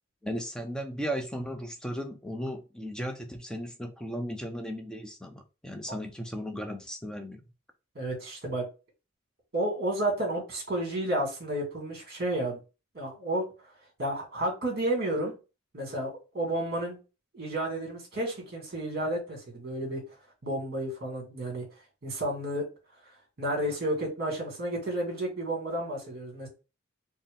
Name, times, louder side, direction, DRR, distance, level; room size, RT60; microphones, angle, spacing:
voice 1, 0.2-7.4, equal, 5° left, 5 dB, 0.5 m, -36 dB
voice 2, 8.0-8.7 9.5-12.6 12.9-13.4 14.0-15.3 15.7-17.0 17.3-20.0 20.4-21.6 22.0-22.7 23.4-26.5, right 1 dB, 50° right, -1 dB, 1.7 m, -31 dB
4.2 x 2.0 x 3.5 m, 0.30 s
head